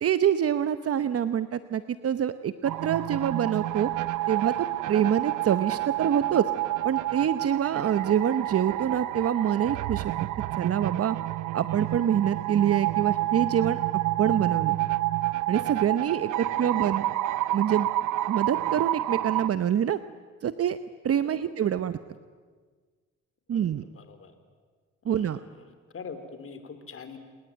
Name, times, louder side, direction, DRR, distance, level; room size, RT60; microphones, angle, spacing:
voice 1, 0.0-3.9 4.3-6.5 6.8-10.1 10.6-11.2 11.5-13.8 14.2-14.8 15.5-17.1 17.5-17.9 18.3-20.0 20.4-20.8 21.0-22.0 23.5-23.8 25.0-25.4, right 9 dB, 50° right, 12 dB, 0.9 m, -26 dB
sound 1, 2.6-19.5, right 16 dB, 85° right, 0.8 m, -29 dB
voice 2, 16.4-16.9 21.2-21.8 23.5-24.4 25.1-25.6 25.9-27.2, left 5 dB, 45° left, 8 dB, 3.7 m, -44 dB
29.5 x 20.5 x 9.1 m, 1.5 s
cardioid pair, 90°, 30 cm